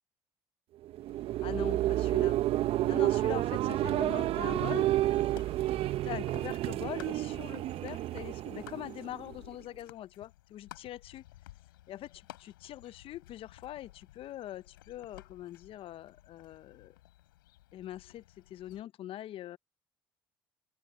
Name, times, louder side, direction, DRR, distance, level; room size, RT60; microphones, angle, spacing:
sound 1, 0.8-9.5, right 14 dB, 60° right, 1.0 m, -30 dB
voice 1, 1.4-2.4 2.8-4.9 6.0-11.2 11.9-17.0 17.7-19.6, left 13 dB, 55° left, 0.9 m, -43 dB
sound 2, 3.6-18.8, left 16 dB, 85° left, 8.0 m, -55 dB
open air
hypercardioid pair, 55°, 11 cm